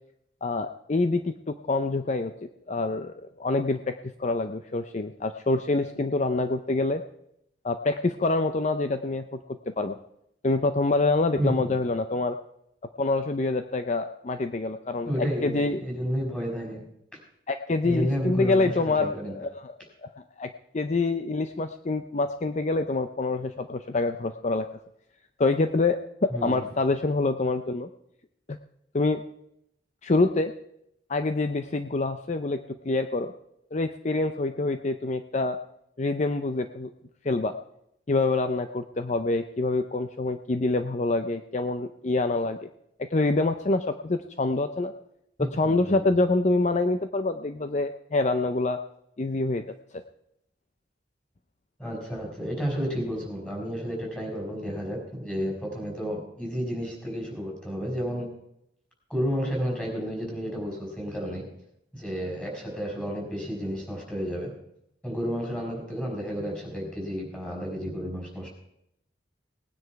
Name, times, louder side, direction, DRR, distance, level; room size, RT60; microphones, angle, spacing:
voice 1, 0.4-2.3 2.7-3.1 3.4-7.0 7.6-9.4 9.8-10.0 10.4-12.4 13.0-15.8 17.5-19.7 20.0-20.1 20.4-24.7 25.4-27.9 28.5-28.6 28.9-29.2 30.0-30.5 31.1-33.3 33.7-35.6 36.0-36.9 37.2-37.5 38.1-42.7 43.0-44.9 45.5-48.8 49.2-49.6, left 3 dB, 40° left, 8 dB, 0.5 m, -26 dB
voice 2, 11.4-11.7 15.0-16.8 17.8-19.4 26.3-26.7 45.4-46.0 51.8-58.3 59.1-61.4 61.9-64.5 65.0-68.5, equal, 5° left, -2 dB, 4.8 m, -31 dB
18.5 x 9.7 x 4.7 m, 0.78 s
head